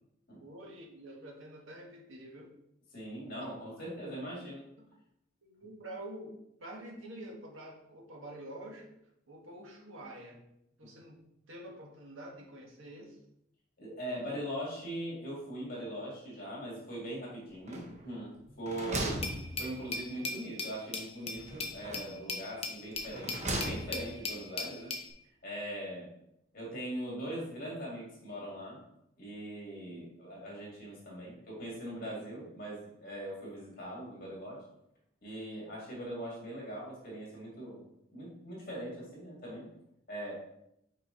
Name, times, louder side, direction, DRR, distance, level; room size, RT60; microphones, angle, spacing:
voice 1, 0.4-2.5 4.2-4.3 5.4-8.9 9.3-10.4 10.8-11.2 11.5-13.2, right 1 dB, 85° right, 0 dB, 1.4 m, -47 dB
voice 2, 2.9-4.6 13.8-19.3 19.6-24.9 25.4-26.1 26.5-28.8 29.2-34.6 35.2-37.8 38.1-39.7 40.1-40.3, right 1 dB, 45° left, -5 dB, 2.3 m, -41 dB
sound 1, 17.7-18.2 18.5-20.1 21.4-22.2 22.9-24.2, right 1 dB, 35° right, 0.9 m, -38 dB
Glass, 19.2-25.1, left 3 dB, 30° left, 0.6 m, -39 dB
5.8 x 4.7 x 3.9 m, 0.79 s
head